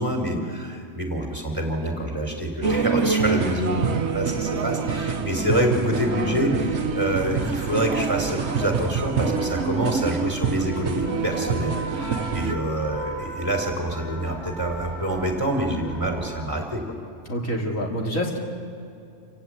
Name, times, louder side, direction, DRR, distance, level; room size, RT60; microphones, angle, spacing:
voice 1, 0.0-16.8, right 1 dB, 15° right, 2 dB, 3.8 m, -27 dB
sound 1, 2.6-12.5, right 5 dB, 60° right, 1.2 m, -26 dB
sound 2, 6.0-16.4, right 1 dB, 35° left, 5.9 m, -39 dB
voice 2, 17.3-18.4, equal, 85° left, -1 dB, 3.4 m, -27 dB
27.5 x 16.5 x 8.9 m, 2.5 s
omnidirectional pair, 1.3 m